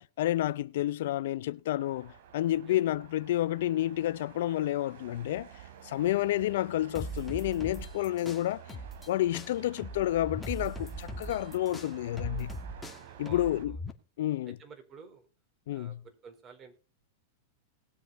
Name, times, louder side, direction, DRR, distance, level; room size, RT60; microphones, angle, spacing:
voice 1, 0.0-5.5 5.8-8.6 9.1-12.5 13.2-13.8 14.2-14.6 15.7-16.0, left 14 dB, 70° left, 0.5 m, -30 dB
sound 1, 1.8-13.7, right 10 dB, 70° right, 3.0 m, -51 dB
sound 2, 6.9-9.1 9.3-13.9, equal, 10° left, 2.3 m, -40 dB
voice 2, 12.8-13.5 14.5-15.3 15.7-16.7, right 6 dB, 30° right, 4.5 m, -51 dB
19.5 x 7.9 x 4.2 m
hypercardioid pair, 115°, 0 cm